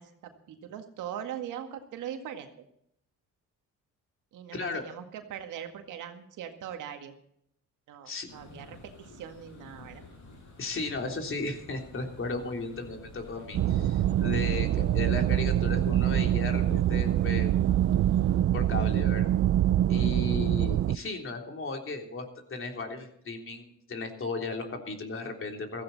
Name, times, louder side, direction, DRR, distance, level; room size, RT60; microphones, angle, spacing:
voice 1, 0.0-2.5 4.3-7.1 7.9-10.1 14.5-14.8, right 9 dB, 85° right, 6 dB, 2.0 m, -41 dB
voice 2, 4.5-4.8 8.0-8.3 10.6-17.5 18.5-19.3 19.9-25.8, left 3 dB, 45° left, 3 dB, 3.4 m, -35 dB
sound 1, 8.3-18.4, left 2 dB, 75° left, 7.8 m, -47 dB
sound 2, 13.5-21.0, right 12 dB, 50° right, 0.4 m, -25 dB
16.0 x 15.0 x 4.1 m, 0.71 s
cardioid pair, 90°, 30 cm